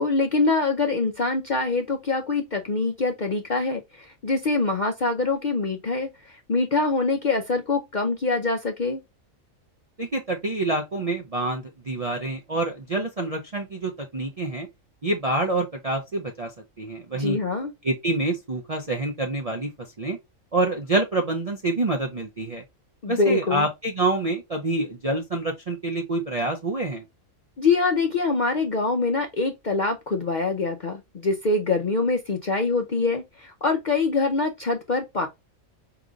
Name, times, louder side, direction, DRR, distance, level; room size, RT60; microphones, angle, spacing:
voice 1, 0.0-9.0 17.1-17.7 23.0-23.7 27.6-35.3, left 3 dB, 50° left, 0.5 m, -24 dB
voice 2, 10.0-14.7 15.0-16.5 16.8-17.4 17.8-20.2 20.5-22.6 23.1-27.0, right 2 dB, 45° right, 0.5 m, -27 dB
5.0 x 2.9 x 2.5 m
omnidirectional pair, 1.4 m